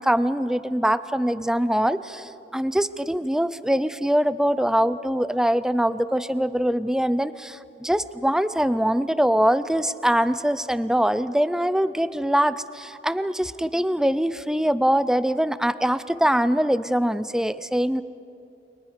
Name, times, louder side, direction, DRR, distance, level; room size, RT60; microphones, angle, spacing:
voice 1, 0.0-18.0, equal, 5° right, 14 dB, 0.5 m, -23 dB
30.0 x 22.5 x 5.1 m, 2.7 s
head